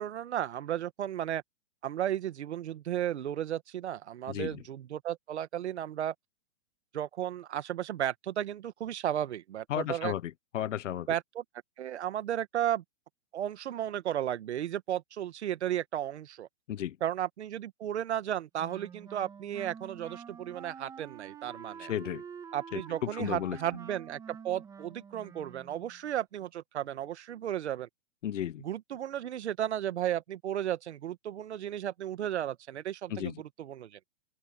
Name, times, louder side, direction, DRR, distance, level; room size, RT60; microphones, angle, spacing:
voice 1, 0.0-1.4 1.8-6.1 6.9-10.1 11.1-11.4 11.8-12.8 13.3-16.5 17.0-21.9 22.5-27.9 28.6-34.0, right 11 dB, 65° right, 1.6 m, -34 dB
voice 2, 4.3-4.6 9.7-11.1 16.7-17.0 21.9-22.2 22.7-22.8 23.1-23.6 28.2-28.6 33.1-33.3, left 11 dB, 85° left, 0.9 m, -34 dB
Wind instrument woodwind instrument, 18.6-26.0, right 7 dB, 10° right, 1.7 m, -47 dB
open air
hypercardioid pair, 165°, 36 cm